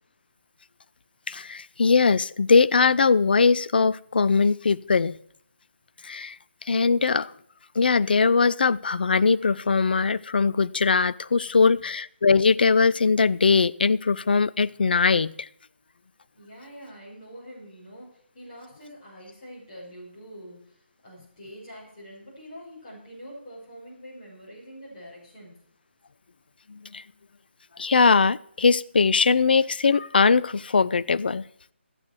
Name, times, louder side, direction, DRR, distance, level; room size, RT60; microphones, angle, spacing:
voice 1, 1.3-5.2 6.0-6.4 6.6-7.3 7.8-15.5 26.7-27.0 27.8-31.4, left 4 dB, 50° left, 18 dB, 0.4 m, -21 dB
voice 2, 16.3-25.5, equal, 25° left, -5 dB, 6.2 m, -45 dB
13.5 x 9.3 x 4.7 m, 0.64 s
figure-of-eight pair, 150°, 6 cm